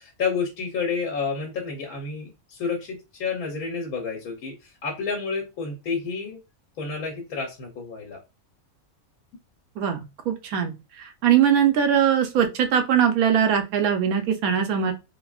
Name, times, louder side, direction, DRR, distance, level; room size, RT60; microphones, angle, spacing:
voice 1, 0.0-6.4 6.8-8.2, left 5 dB, 90° left, 0 dB, 1.2 m, -30 dB
voice 2, 10.3-14.9, right 8 dB, 85° right, 6 dB, 1.1 m, -21 dB
3.4 x 2.1 x 2.3 m, 0.26 s
omnidirectional pair, 1.5 m